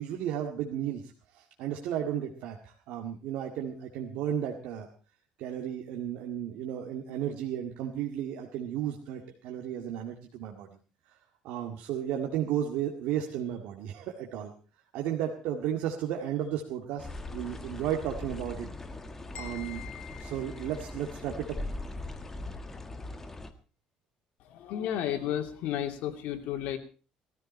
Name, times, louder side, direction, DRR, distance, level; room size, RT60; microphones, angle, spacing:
voice 1, 0.0-4.9 5.4-10.7 11.4-14.5 14.9-18.7 19.4-19.8 20.1-21.6, right 10 dB, 80° right, 2 dB, 2.0 m, -34 dB
sound 1, 17.0-23.5, left 2 dB, 15° left, 1.6 m, -40 dB
sound 2, 19.3-21.4, left 12 dB, 50° left, 4.4 m, -48 dB
voice 2, 24.4-26.8, left 11 dB, 75° left, 4 dB, 2.8 m, -32 dB
18.5 x 14.0 x 4.4 m, 0.37 s
cardioid pair, 140°, 2 cm